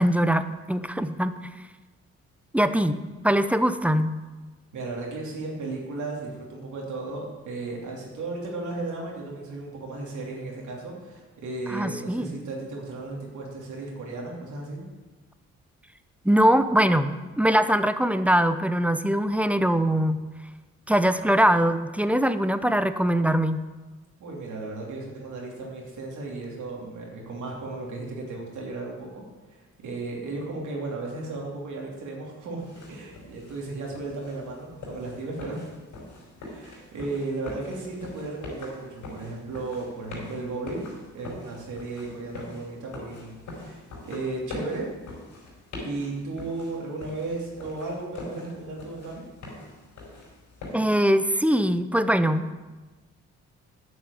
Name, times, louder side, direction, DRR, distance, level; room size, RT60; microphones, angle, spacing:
voice 1, 0.0-1.3 2.5-4.2 11.7-12.3 16.2-20.2 20.9-23.6 50.7-52.6, equal, 5° right, 11 dB, 0.7 m, -22 dB
voice 2, 4.7-14.8 24.2-35.6 36.4-40.9 41.1-44.9 45.8-49.2, right 3 dB, 80° right, -2 dB, 3.0 m, -35 dB
sound 1, 32.6-51.0, left 2 dB, 90° left, 4.3 m, -42 dB
9.4 x 6.5 x 8.2 m, 1.2 s
cardioid pair, 70°, 30 cm